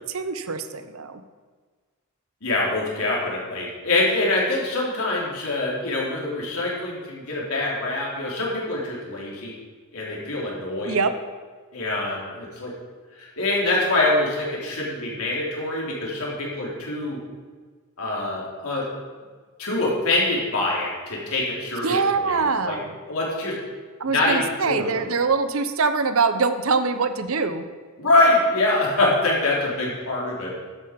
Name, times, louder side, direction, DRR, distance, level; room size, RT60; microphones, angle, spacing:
voice 1, 0.1-1.2 10.9-11.1 21.8-22.9 24.0-27.6, right 4 dB, 75° right, 11 dB, 0.8 m, -23 dB
voice 2, 2.4-9.6 9.9-11.0 11.7-12.7 13.2-17.2 18.0-18.9 19.6-22.4 22.6-22.8 23.1-23.6 24.1-25.1 28.0-30.5, left 2 dB, 85° left, -4 dB, 3.6 m, -24 dB
11.5 x 8.7 x 5.2 m, 1.5 s
head